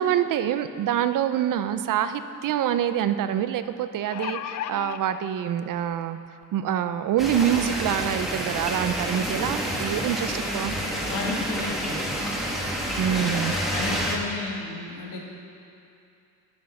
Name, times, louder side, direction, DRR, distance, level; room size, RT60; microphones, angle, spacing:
voice 1, 0.0-6.2 6.5-10.7 13.0-13.7, right 10 dB, 80° right, 11 dB, 0.6 m, -26 dB
sound 1, 1.7-1.8 2.1-2.2 3.8-5.0 5.9-6.0 6.4-6.5, left 11 dB, 60° left, 0.5 m, -33 dB
sound 2, 7.2-14.2, equal, ahead, 1.5 m, -28 dB
voice 2, 11.0-12.0 13.1-15.2, left 3 dB, 85° left, -2 dB, 2.2 m, -33 dB
12.5 x 6.3 x 7.1 m, 2.6 s
cardioid pair, 140°, 32 cm